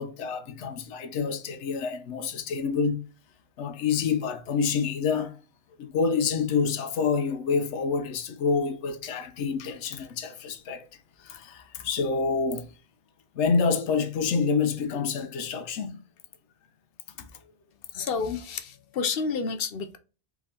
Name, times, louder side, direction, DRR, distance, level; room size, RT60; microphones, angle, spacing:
voice 1, 0.0-3.0 3.6-5.4 5.8-10.8 11.2-12.7 13.4-16.0 17.2-17.3, left 5 dB, 85° left, 1.0 m, -27 dB
voice 2, 17.9-20.0, left 5 dB, 60° left, 0.8 m, -30 dB
5.2 x 3.6 x 2.8 m
omnidirectional pair, 1.1 m